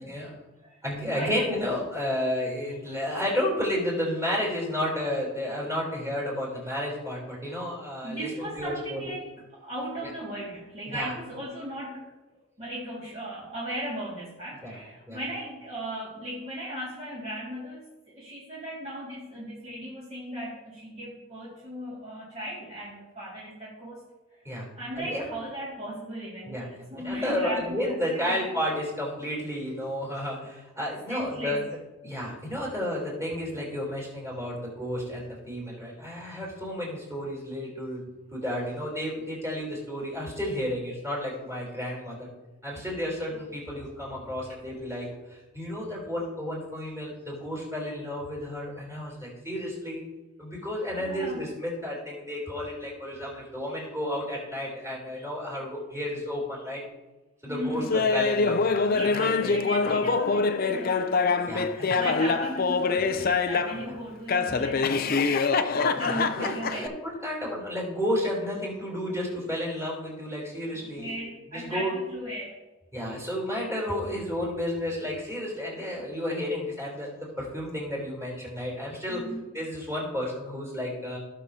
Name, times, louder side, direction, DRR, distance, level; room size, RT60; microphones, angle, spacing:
voice 1, 0.0-1.4 8.0-12.1 12.6-24.0 24.3-24.4 24.8-28.6 31.1-31.6 43.4-43.5 51.0-51.4 57.5-57.9 58.9-66.9 70.7-72.6 79.1-79.5, right 1 dB, 30° right, -8 dB, 2.1 m, -37 dB
voice 2, 0.8-9.1 10.9-11.1 14.6-14.7 15.1-15.2 24.4-24.7 25.0-25.3 26.4-31.6 32.0-38.1 38.3-42.3 42.6-50.0 50.4-56.8 57.4-59.5 61.5-62.2 63.7-64.0 64.5-64.6 66.0-71.1 71.5-72.0 72.9-79.2 79.5-81.2, left 1 dB, 15° right, -3 dB, 3.5 m, -32 dB
Laughter, 57.9-63.8 64.3-66.9, left 4 dB, 40° left, 0.5 m, -25 dB
17.0 x 6.3 x 2.8 m, 1.1 s
head